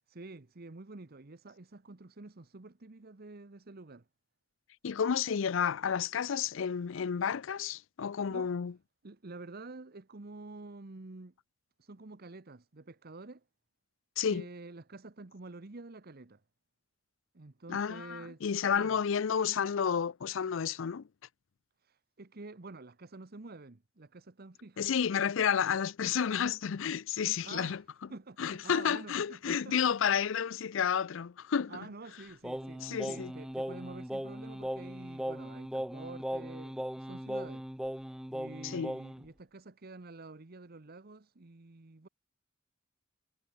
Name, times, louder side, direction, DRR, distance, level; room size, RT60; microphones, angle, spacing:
voice 1, 0.1-4.0 8.3-8.5 9.0-11.3 11.8-13.4 14.3-16.4 17.3-18.4 18.7-19.0 21.8-24.9 27.4-27.8 28.1-30.2 31.7-37.7 38.3-42.1, right 3 dB, 50° right, 1.0 m, -48 dB
voice 2, 4.8-8.7 14.2-14.5 17.7-21.1 24.8-27.8 28.4-31.8 32.8-33.3 38.6-38.9, left 7 dB, 70° left, 0.5 m, -31 dB
Singing, 32.4-39.3, equal, 5° right, 0.6 m, -38 dB
head